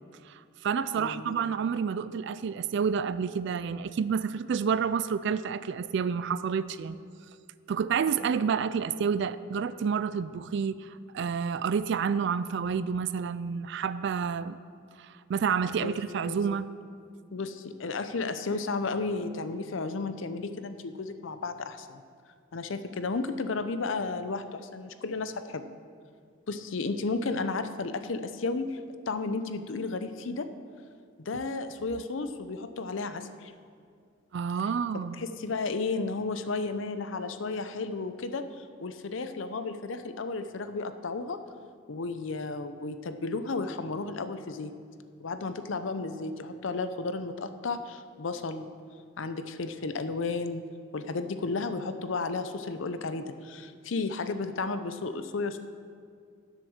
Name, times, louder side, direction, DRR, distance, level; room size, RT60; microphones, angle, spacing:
voice 1, 0.3-7.0 7.7-14.6 15.0-16.7 34.3-35.2, right 6 dB, 60° right, 14 dB, 0.3 m, -29 dB
voice 2, 0.9-1.3 15.8-15.9 16.2-16.4 17.3-22.0 22.5-25.6 26.5-28.8 29.1-30.5 31.2-33.5 35.2-41.4 41.9-44.7 45.2-48.7 49.2-50.6 50.9-55.6, left 3 dB, 70° left, 10 dB, 0.6 m, -33 dB
10.5 x 7.5 x 6.4 m, 2.2 s
head